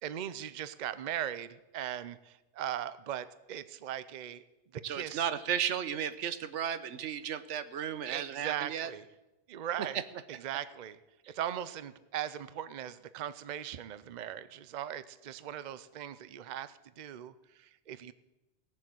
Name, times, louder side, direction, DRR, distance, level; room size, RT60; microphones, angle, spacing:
voice 1, 0.0-4.4 4.7-5.3 8.1-9.0 9.5-10.0 10.3-11.0 11.3-18.1, right 10 dB, 50° right, 14 dB, 0.6 m, -39 dB
voice 2, 4.8-8.9 11.2-11.3, right 9 dB, 90° right, 13 dB, 1.1 m, -34 dB
17.0 x 7.4 x 7.6 m, 1.0 s
omnidirectional pair, 1.2 m